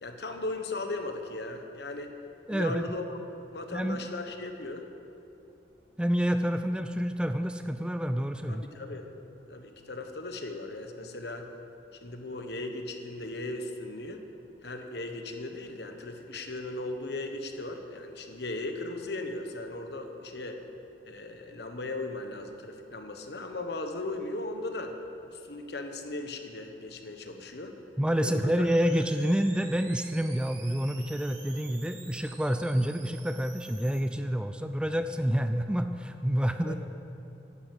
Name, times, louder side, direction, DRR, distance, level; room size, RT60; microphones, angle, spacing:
voice 1, 0.0-2.1 2.5-3.2 3.5-4.9 8.5-9.1 9.5-11.5 12.0-14.2 14.6-20.6 21.0-24.9 25.3-27.7 28.2-28.7 36.6-36.8, left 2 dB, 65° left, 5 dB, 1.3 m, -37 dB
voice 2, 2.5-2.8 3.7-4.0 6.0-8.7 28.0-36.8, equal, 5° right, 8 dB, 0.4 m, -28 dB
sound 1, 28.6-34.0, right 4 dB, 90° right, 3.3 m, -49 dB
11.5 x 10.5 x 8.1 m, 2.8 s
head